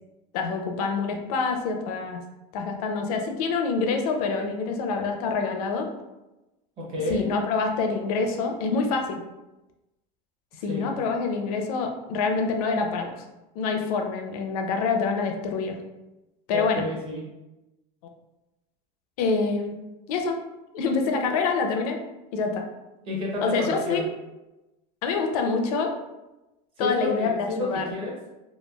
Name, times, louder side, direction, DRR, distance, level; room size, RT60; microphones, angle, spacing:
voice 1, 0.3-2.2 2.5-5.9 7.1-9.2 10.6-13.2 13.6-15.8 16.5-16.9 19.2-19.7 20.1-20.4 20.7-22.0 22.3-22.7 23.4-24.0 25.0-25.9 26.8-27.8, left 4 dB, 60° left, 3 dB, 0.5 m, -26 dB
voice 2, 6.8-7.3 10.6-10.9 16.5-17.2 23.1-24.0 26.8-28.1, left 1 dB, 25° right, -3 dB, 0.6 m, -30 dB
3.0 x 2.2 x 2.2 m, 1.0 s
supercardioid pair, 175°, 21 cm